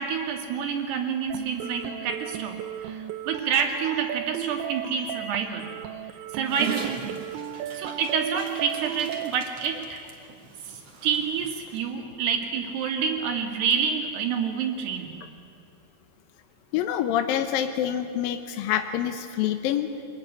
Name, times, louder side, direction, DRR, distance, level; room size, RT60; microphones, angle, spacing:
voice 1, 0.0-5.7 6.3-7.2 7.7-10.0 10.7-15.2, right 6 dB, 70° right, 4 dB, 4.2 m, -28 dB
sound 1, 1.3-9.3, right 11 dB, 85° right, 3.1 m, -35 dB
Dog, 6.5-11.8, right 5 dB, 45° right, 2.3 m, -40 dB
voice 2, 16.7-19.9, left 10 dB, 75° left, 7 dB, 2.2 m, -26 dB
25.0 x 21.5 x 10.0 m, 2.5 s
omnidirectional pair, 5.1 m